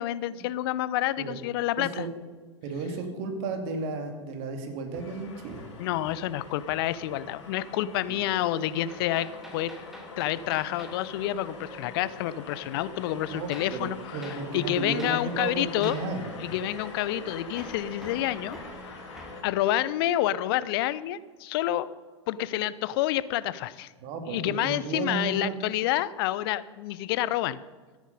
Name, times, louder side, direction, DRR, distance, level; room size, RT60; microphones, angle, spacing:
voice 1, 0.0-2.1 5.8-9.7 10.2-16.0 16.4-18.6 19.4-21.9 22.3-23.9 24.3-27.6, left 13 dB, 50° left, 17 dB, 0.6 m, -28 dB
voice 2, 1.8-2.1 2.6-5.6 8.1-8.2 13.3-16.5 24.0-25.5, right 3 dB, 50° right, 5 dB, 2.4 m, -34 dB
Hammer, 4.9-6.4 6.7-7.0 8.9-11.0 13.5-13.8 14.2-14.4 15.0-15.2 15.8-16.1 17.6-19.4, left 1 dB, ahead, 2.7 m, -47 dB
sound 1, 5.0-19.4, left 3 dB, 70° left, 4.2 m, -44 dB
13.5 x 10.5 x 5.4 m, 1.4 s
figure-of-eight pair, 95°, 15 cm